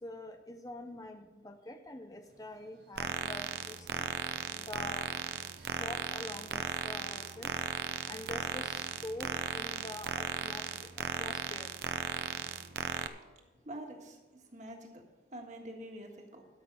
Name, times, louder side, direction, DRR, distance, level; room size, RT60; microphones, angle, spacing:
voice 1, 0.0-4.1 4.6-5.1 5.7-7.5 8.1-11.7, left 1 dB, 20° left, 7 dB, 0.5 m, -45 dB
sound 1, 2.2-13.0, right 1 dB, 80° right, 3.6 m, -61 dB
sound 2, 3.0-13.1, right 6 dB, 65° right, 0.7 m, -36 dB
voice 2, 13.6-14.2 14.5-15.0 15.3-16.5, right 1 dB, 40° right, 2 dB, 1.6 m, -46 dB
12.5 x 5.9 x 6.8 m, 1.2 s
head